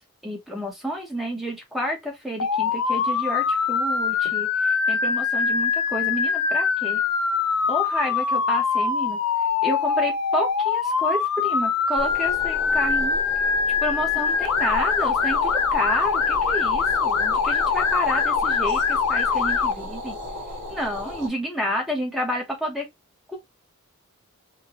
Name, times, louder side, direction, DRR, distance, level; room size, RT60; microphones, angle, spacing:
voice 1, 0.2-7.0 7.7-9.2 9.6-13.2 13.8-20.2 20.7-22.9 23.3-23.4, equal, ahead, 0.8 m, -30 dB
Motor vehicle (road) / Siren, 2.4-19.7, left 5 dB, 80° left, 0.6 m, -23 dB
sound 1, 12.0-21.3, left 1 dB, 55° right, 1.3 m, -35 dB
3.9 x 2.2 x 2.9 m
head